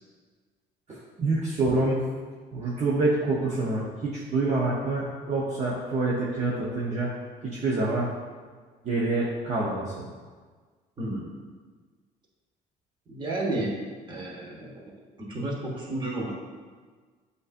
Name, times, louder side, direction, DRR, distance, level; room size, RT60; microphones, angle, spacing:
voice 1, 1.2-2.0 2.5-7.1 7.4-8.1 8.8-10.1, right 2 dB, 40° right, -7 dB, 0.8 m, -26 dB
voice 2, 11.0-11.3 13.1-13.7 14.1-16.4, right 2 dB, 25° right, -3 dB, 1.2 m, -32 dB
7.8 x 2.6 x 2.5 m, 1.5 s
cardioid pair, 110°, 17 cm